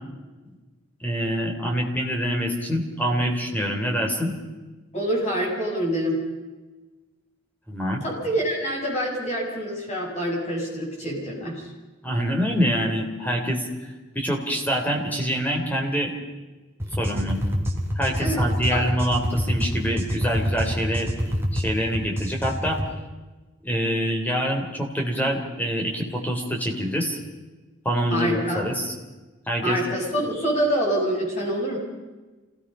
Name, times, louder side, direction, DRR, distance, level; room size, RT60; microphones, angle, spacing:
voice 1, 1.0-4.3 7.7-8.0 12.0-13.7 14.1-16.1 17.0-17.4 17.9-21.1 21.5-22.8 23.6-27.2 27.8-28.9 29.5-29.8, equal, 10° left, 1 dB, 3.4 m, -25 dB
voice 2, 4.9-6.2 8.0-11.7 18.2-18.8 28.1-28.6 29.6-31.8, equal, 35° left, -2 dB, 7.4 m, -26 dB
sound 1, 16.8-22.9, equal, 10° right, 2.6 m, -27 dB
27.0 x 17.5 x 5.6 m, 1.2 s
head